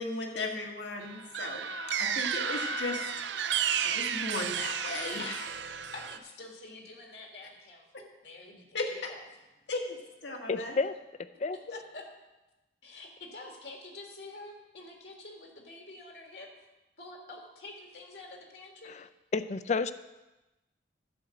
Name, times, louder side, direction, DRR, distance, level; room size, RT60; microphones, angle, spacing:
voice 1, 0.0-1.7 2.0-3.3 3.8-5.6 8.7-9.1 9.7-10.8, left 2 dB, 90° left, 1 dB, 1.7 m, -36 dB
sound 1, 1.0-6.2, right 7 dB, 90° right, 0.5 m, -32 dB
voice 2, 5.9-7.9 8.2-9.2 10.6-10.7 11.5-12.1 12.8-16.5 17.0-18.9, left 2 dB, 70° left, 2 dB, 1.9 m, -47 dB
voice 3, 10.5-10.9 11.4-11.6 19.3-19.9, left 4 dB, 40° left, 13 dB, 0.4 m, -29 dB
11.0 x 4.9 x 7.7 m, 1.0 s
head